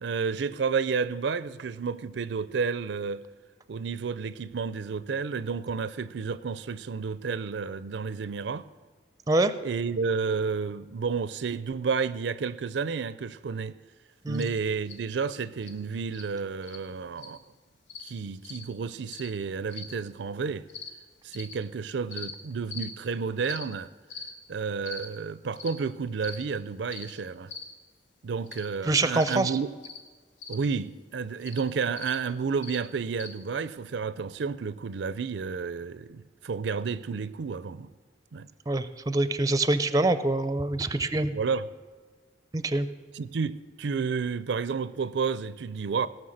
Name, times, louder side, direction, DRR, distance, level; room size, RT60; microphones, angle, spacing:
voice 1, 0.0-3.2 3.7-8.7 9.6-13.7 14.3-17.4 18.0-20.7 21.2-23.9 24.5-27.5 28.2-29.7 30.5-37.9 38.3-38.5 41.3-41.7 43.1-46.1, right 5 dB, 75° right, 0.5 m, -31 dB
sound 1, 14.3-14.5 14.9-15.0 15.6-15.7 16.1-16.3 16.6-16.8 17.2-17.4 17.9-18.1 18.4-18.6 19.1-19.3 19.7-19.9 20.7-20.9 21.3-21.5 22.1-22.3 22.7-22.9 23.4-23.6 24.1-24.3 24.8-25.1 25.6-25.7 26.2-26.4 26.9-27.1 27.5-27.7 28.5-28.7 29.2-29.4 29.8-30.0 30.4-30.6 31.4-31.6 32.0-32.2 32.6-32.8 33.2-33.3, left 5 dB, 85° left, 1.5 m, -41 dB
voice 2, 28.9-29.5 38.7-41.3 42.5-42.9, right 2 dB, 20° right, 0.5 m, -25 dB
17.5 x 6.4 x 6.5 m
head